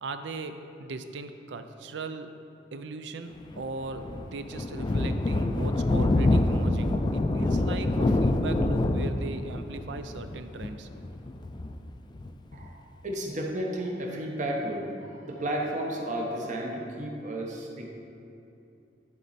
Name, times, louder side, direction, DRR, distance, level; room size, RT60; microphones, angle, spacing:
voice 1, 0.0-2.3 2.7-10.9, right 3 dB, 80° right, 9 dB, 0.5 m, -38 dB
Thunder, 3.5-12.7, left 2 dB, 25° left, 0.3 m, -26 dB
voice 2, 13.0-17.9, right 1 dB, 45° right, 0 dB, 1.0 m, -32 dB
11.0 x 4.3 x 4.1 m, 2.8 s
head